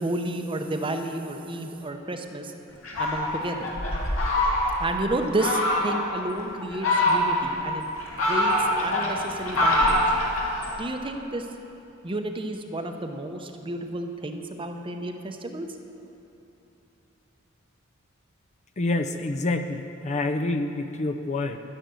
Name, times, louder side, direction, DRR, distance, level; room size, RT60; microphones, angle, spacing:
voice 1, 0.0-2.5 3.0-3.7 4.8-7.9 8.3-10.0 10.8-11.5 12.0-15.7, right 2 dB, 25° right, 5 dB, 0.7 m, -31 dB
Fowl, 2.8-4.9 5.4-6.0 6.6-7.5 8.0-10.8, left 1 dB, 75° left, 2.4 m, -24 dB
voice 2, 18.8-21.6, left 2 dB, 35° left, 7 dB, 0.5 m, -27 dB
11.0 x 10.0 x 6.9 m, 2.9 s
head